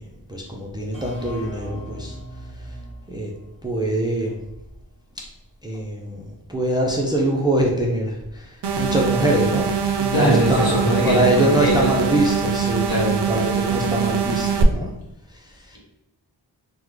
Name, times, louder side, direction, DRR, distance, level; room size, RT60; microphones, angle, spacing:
voice 1, 0.0-2.8 3.1-3.3 3.6-4.4 5.6-9.7 10.0-14.9 15.3-15.8, right 1 dB, 10° right, -1 dB, 0.5 m, -24 dB
sound 1, 0.9-4.5, equal, 15° left, 1.1 m, -39 dB
sound 2, 8.6-14.6, right 7 dB, 65° right, 0.5 m, -23 dB
voice 2, 10.1-12.2 12.8-13.2, equal, 55° left, -3 dB, 1.2 m, -21 dB
3.5 x 2.2 x 3.1 m, 0.87 s
wide cardioid pair, 50°, 44 cm